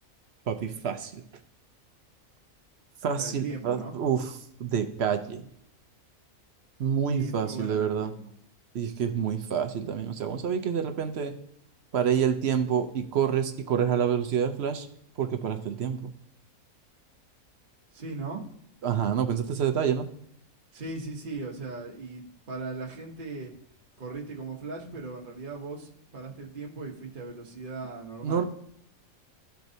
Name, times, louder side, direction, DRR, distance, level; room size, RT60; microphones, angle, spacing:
voice 1, 0.5-1.2 3.0-4.3 4.6-5.4 6.8-8.1 8.7-11.3 11.9-14.9 15.2-16.0 18.8-20.1 28.2-28.4, right 8 dB, 60° right, 7 dB, 0.8 m, -27 dB
voice 2, 3.1-4.0 7.1-8.3 17.9-18.4 20.7-23.5 24.0-28.4, right 3 dB, 40° right, -1 dB, 1.2 m, -38 dB
13.5 x 4.6 x 2.7 m, 0.70 s
omnidirectional pair, 1.4 m